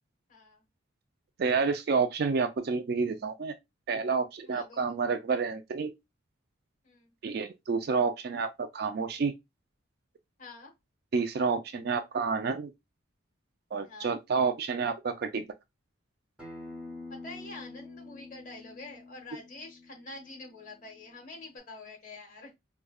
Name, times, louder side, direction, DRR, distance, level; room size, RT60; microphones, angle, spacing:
voice 1, 0.3-0.6 4.4-5.0 6.8-7.1 10.4-10.7 13.8-14.2 17.1-22.6, left 2 dB, 40° left, 1.1 m, -47 dB
voice 2, 1.4-3.5 3.9-5.9 7.2-9.3 11.1-12.7 13.7-15.5, right 5 dB, 50° right, 0.3 m, -29 dB
Acoustic guitar, 16.4-21.6, left 2 dB, 5° right, 1.0 m, -47 dB
4.8 x 2.2 x 2.2 m
head